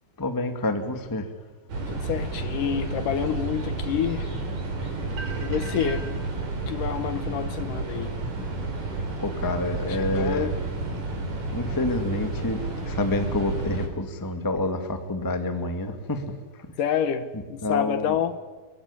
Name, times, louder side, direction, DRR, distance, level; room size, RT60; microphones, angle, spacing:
voice 1, 0.2-1.3 9.2-10.5 11.5-16.7 17.3-18.2, left 2 dB, 10° left, 1.3 m, -28 dB
sound 1, 1.7-13.9, right 3 dB, 50° right, 5.1 m, -31 dB
voice 2, 1.9-4.4 4.8-4.9 5.4-6.1 6.7-8.1 9.8-10.6 16.8-18.4, left 8 dB, 70° left, 2.4 m, -28 dB
26.0 x 23.0 x 9.9 m
omnidirectional pair, 4.3 m